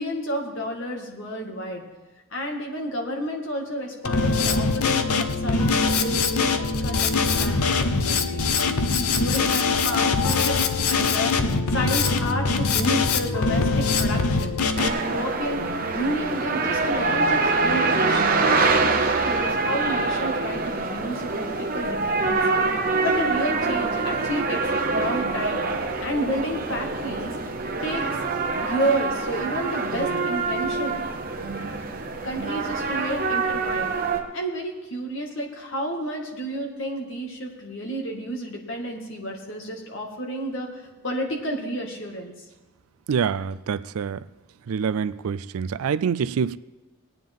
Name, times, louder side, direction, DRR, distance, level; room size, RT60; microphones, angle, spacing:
voice 1, 0.0-1.8 2.3-7.1 7.4-8.5 8.9-15.6 15.9-22.6 23.0-24.6 24.9-25.6 26.0-27.3 27.8-28.1 28.6-31.0 32.2-33.9 34.3-42.3, equal, 60° left, 2.0 m, -31 dB
Drum kit, 4.0-14.9, left 4 dB, 90° left, 0.8 m, -22 dB
sound 1, 14.8-34.2, right 3 dB, 40° right, 0.9 m, -25 dB
voice 2, 43.1-44.2 44.7-46.6, right 6 dB, 75° right, 0.4 m, -26 dB
18.5 x 9.3 x 3.6 m
head